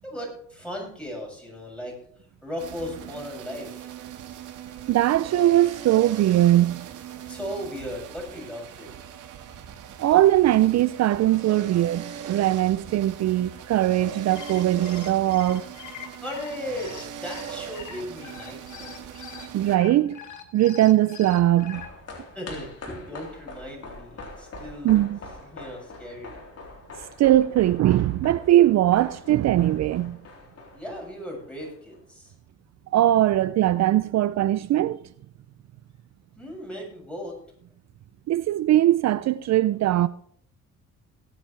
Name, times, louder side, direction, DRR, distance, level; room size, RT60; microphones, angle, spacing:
voice 1, 0.0-2.0 2.4-4.0 7.3-8.9 16.2-19.5 22.3-25.0 25.4-26.5 30.7-32.3 36.4-37.4, left 1 dB, 5° left, 7.0 m, -37 dB
sound 1, 2.6-19.8, right 8 dB, 80° right, 1.8 m, -40 dB
voice 2, 4.9-6.9 10.0-15.7 19.5-20.2 20.5-21.8 24.8-25.2 27.0-30.2 32.9-35.0 38.3-40.1, right 13 dB, 60° right, 0.5 m, -20 dB
sound 2, 14.1-21.9, left 8 dB, 80° left, 1.9 m, -43 dB
sound 3, 21.4-32.0 32.3-32.4, left 2 dB, 55° left, 3.8 m, -44 dB
20.5 x 8.9 x 3.3 m
cardioid pair, 90°, 30 cm